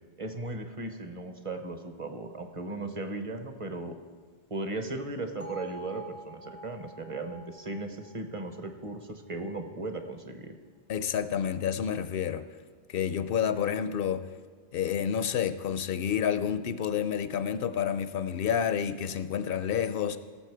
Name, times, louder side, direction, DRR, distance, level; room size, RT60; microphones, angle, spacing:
voice 1, 0.2-4.0 4.5-10.6, right 2 dB, 35° right, 6 dB, 1.0 m, -37 dB
Bell, 5.4-9.5, right 1 dB, 85° right, 2.4 m, -48 dB
voice 2, 10.9-12.4 12.9-14.2 14.7-20.2, left 8 dB, 70° left, 12 dB, 0.7 m, -29 dB
17.0 x 7.2 x 4.7 m, 1.5 s
omnidirectional pair, 1.0 m